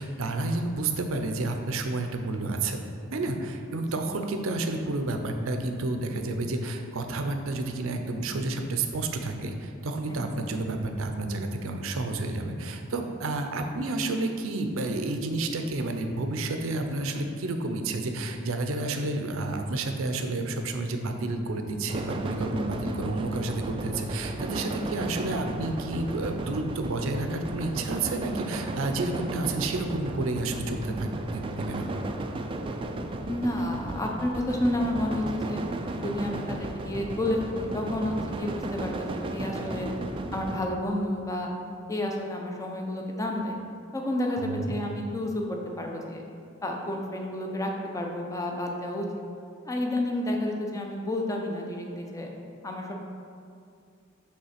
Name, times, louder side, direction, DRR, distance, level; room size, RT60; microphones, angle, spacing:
voice 1, 0.0-2.8 3.1-31.9 44.3-44.8, right 2 dB, 80° right, 5 dB, 0.5 m, -30 dB
sound 1, 21.9-40.7, right 2 dB, 25° right, 0.3 m, -34 dB
voice 2, 22.5-22.9 33.3-35.6 36.0-39.9 40.3-41.5 41.9-43.5 43.9-46.2 46.6-49.1 49.7-52.3 52.6-52.9, left 1 dB, 15° left, 1 dB, 0.6 m, -30 dB
5.5 x 3.4 x 5.7 m, 2.4 s
head